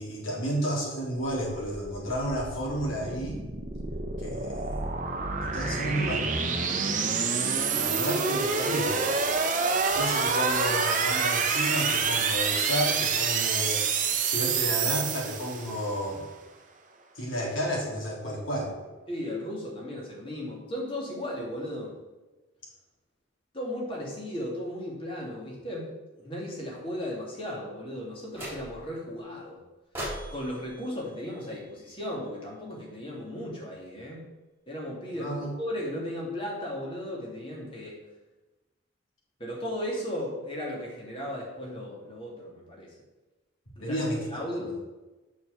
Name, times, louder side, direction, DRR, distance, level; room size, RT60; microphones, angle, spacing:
voice 1, 0.0-3.4 4.2-4.8 5.4-6.3 7.7-9.0 9.9-13.9 14.2-16.3 17.1-18.7 35.2-35.5 43.8-44.6, equal, 90° left, -4 dB, 3.3 m, -31 dB
sound 1, 1.9-15.9, right 5 dB, 40° right, 0.8 m, -27 dB
voice 2, 19.1-21.9 23.5-29.6 30.3-34.3 34.7-38.0 39.4-43.0 43.8-44.0 44.3-44.7, left 1 dB, 25° left, -3 dB, 2.4 m, -36 dB
sound 2, 28.3-29.0 29.9-32.2, equal, 10° right, 3.4 m, -40 dB
7.0 x 5.9 x 6.8 m, 1.1 s
head